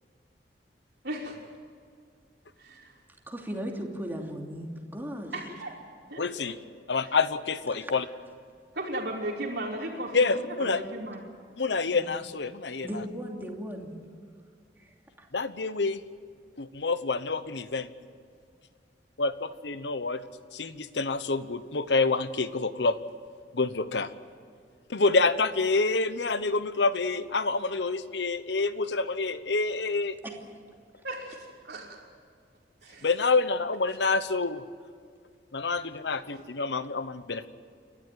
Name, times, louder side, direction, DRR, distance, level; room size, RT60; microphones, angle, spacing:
voice 1, 1.0-1.4 2.6-3.0 5.3-5.7 6.1-6.2 8.7-11.2 31.0-31.4 31.6-32.0 32.8-33.1, right 1 dB, 70° right, -6 dB, 3.2 m, -35 dB
voice 2, 3.3-5.3 7.8-7.9 11.9-12.0 12.8-13.9 14.8-15.3 30.2-30.4, equal, 10° right, 1 dB, 2.8 m, -37 dB
voice 3, 6.2-6.6 6.9-8.0 10.1-10.8 11.6-13.0 15.3-16.0 16.6-17.9 19.2-20.2 20.5-23.0 23.5-24.1 24.9-30.2 33.0-34.6 35.5-37.5, left 3 dB, 75° left, 13 dB, 1.0 m, -27 dB
29.5 x 12.5 x 9.3 m, 2.2 s
head